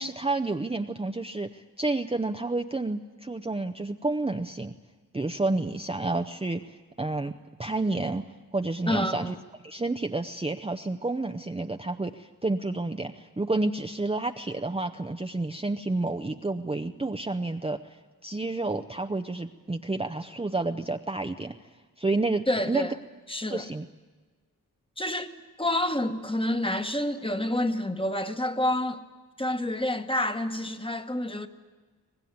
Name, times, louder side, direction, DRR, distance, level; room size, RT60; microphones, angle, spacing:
voice 1, 0.0-4.7 5.1-7.3 7.6-8.3 8.5-9.3 9.6-21.5 22.0-22.9 23.5-23.9, right 2 dB, 15° right, 0.7 m, -30 dB
voice 2, 8.9-9.4 22.5-22.9 23.3-23.7 25.0-29.0 29.4-31.5, left 1 dB, 15° left, 1.3 m, -28 dB
24.0 x 19.5 x 9.4 m
wide cardioid pair, 100°, 36 cm